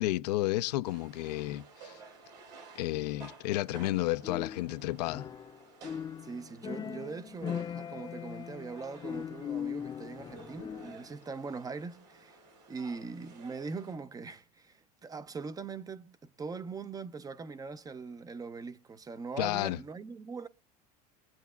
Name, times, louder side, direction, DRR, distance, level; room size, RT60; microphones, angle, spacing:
voice 1, 0.0-2.0 2.7-5.3 19.4-19.8, left 17 dB, 85° left, 0.6 m, -32 dB
sound 1, 0.8-14.0, right 3 dB, 90° right, 4.8 m, -54 dB
sound 2, 4.2-5.6 5.8-11.1, left 8 dB, 20° left, 0.4 m, -40 dB
voice 2, 6.2-12.4 12.7-20.5, right 4 dB, 20° right, 0.6 m, -41 dB
23.0 x 8.2 x 2.4 m
supercardioid pair, 120°, 20 cm